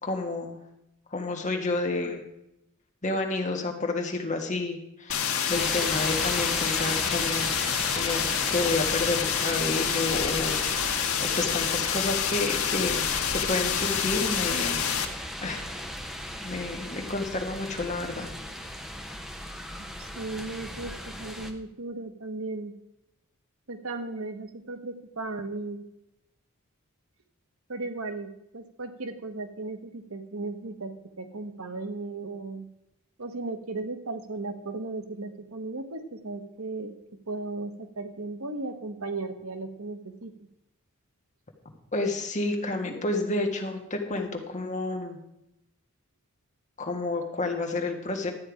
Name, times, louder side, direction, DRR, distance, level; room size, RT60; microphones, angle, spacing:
voice 1, 0.0-0.6 1.1-2.2 3.0-7.5 7.9-8.2 8.5-14.8 15.4-15.6 16.4-18.3 41.9-45.2 46.8-48.3, left 2 dB, 35° left, 3 dB, 1.6 m, -30 dB
sound 1, 5.1-15.0, left 8 dB, 85° left, 1.3 m, -28 dB
sound 2, 5.5-21.5, equal, ahead, 0.9 m, -36 dB
voice 2, 20.0-22.7 23.7-25.9 27.7-32.7 33.2-36.9 37.3-40.3, right 3 dB, 80° right, 7 dB, 1.2 m, -36 dB
12.5 x 8.8 x 5.0 m, 0.85 s
head